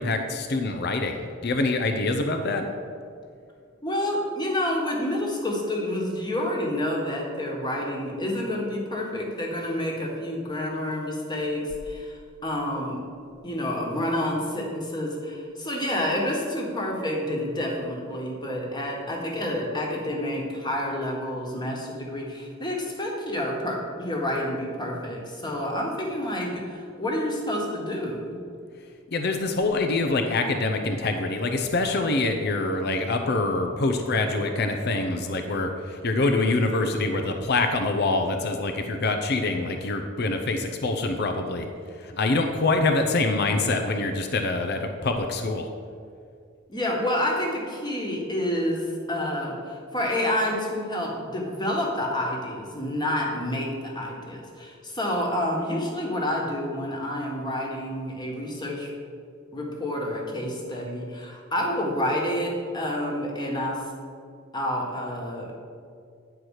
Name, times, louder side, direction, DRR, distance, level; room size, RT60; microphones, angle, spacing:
voice 1, 0.0-2.6 29.1-41.7 42.0-45.7, left 2 dB, 50° left, 5 dB, 0.6 m, -25 dB
voice 2, 3.8-13.0 13.4-28.4 46.7-58.9 59.5-63.9 64.5-65.5, left 1 dB, 20° left, -1 dB, 1.5 m, -29 dB
9.7 x 4.7 x 6.4 m, 2.3 s
head